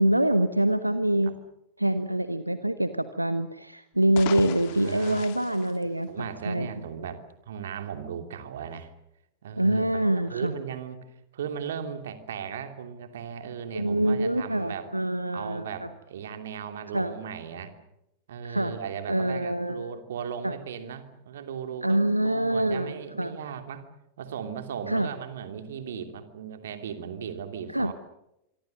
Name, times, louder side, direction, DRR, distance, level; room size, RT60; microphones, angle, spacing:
voice 1, 0.0-1.3 1.8-6.7 9.6-10.5 13.7-15.9 16.9-17.1 18.4-18.8 19.1-19.9 20.4-20.5 21.8-23.4 24.9-25.1 27.7-27.9, right 1 dB, 85° right, 11 dB, 1.1 m, -25 dB
sound 1, 3.9-6.5, left 15 dB, 50° left, 1.6 m, -39 dB
voice 2, 4.7-5.2 6.1-8.9 9.4-14.9 15.3-17.7 18.3-23.9 24.2-27.9, right 7 dB, 60° right, 7 dB, 2.8 m, -37 dB
26.0 x 25.0 x 6.6 m, 0.85 s
figure-of-eight pair, 90°, 0 cm